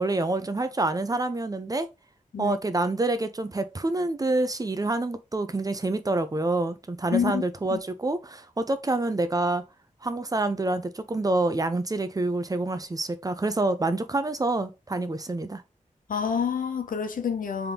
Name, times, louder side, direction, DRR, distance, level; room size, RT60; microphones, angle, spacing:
voice 1, 0.0-1.9 2.4-9.6 10.0-15.6, right 2 dB, 25° right, 0.5 m, -27 dB
voice 2, 7.1-7.4 7.7-7.8 16.1-17.7, left 7 dB, 85° left, 0.7 m, -27 dB
3.8 x 3.4 x 2.8 m
wide cardioid pair, 90°, 14 cm